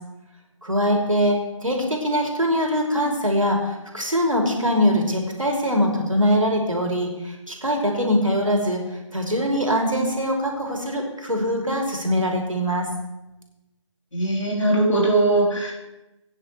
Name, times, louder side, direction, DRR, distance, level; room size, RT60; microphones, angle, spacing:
voice 1, 0.6-1.4 1.6-8.8 9.1-12.9, equal, 80° right, 1 dB, 3.1 m, -22 dB
voice 2, 14.1-15.7, right 2 dB, 70° left, -4 dB, 4.0 m, -20 dB
18.5 x 9.6 x 3.3 m, 0.99 s
figure-of-eight pair, 150°, 17 cm